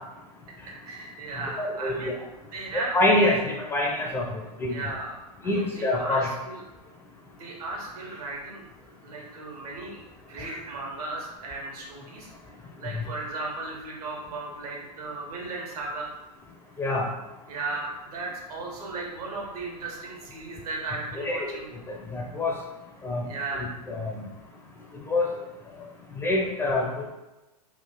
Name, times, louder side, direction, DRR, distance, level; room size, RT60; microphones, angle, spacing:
voice 1, 0.6-2.1 2.5-2.9 3.2-3.3 4.7-5.1 5.4-6.6 7.4-10.0 10.3-12.3 12.8-16.1 17.5-21.6 23.2-23.7, right 3 dB, 65° right, -2 dB, 1.3 m, -36 dB
voice 2, 1.6-2.0 2.7-3.4 3.7-4.3 4.6-4.8 5.4-6.3 16.8-17.1 21.2-21.5 21.9-22.6 23.0-23.2 23.6-24.2 25.1-25.3 26.2-27.1, left 2 dB, 10° left, -1 dB, 0.4 m, -25 dB
3.4 x 2.4 x 3.7 m, 1.0 s
hypercardioid pair, 120°, 21 cm